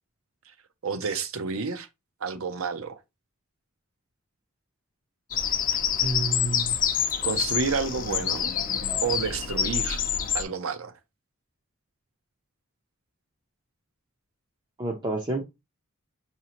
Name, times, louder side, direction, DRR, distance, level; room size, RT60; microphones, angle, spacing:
voice 1, 0.8-1.9 2.2-3.0 6.0-6.2 7.2-8.5 9.0-10.0 10.3-10.9, right 5 dB, 70° right, 0.6 m, -30 dB
Bird vocalization bird call bird song, 5.3-10.4, left 8 dB, 40° left, 0.5 m, -27 dB
voice 2, 6.0-6.7 14.8-15.4, right 2 dB, 20° right, 0.5 m, -29 dB
5.7 x 2.8 x 2.9 m
head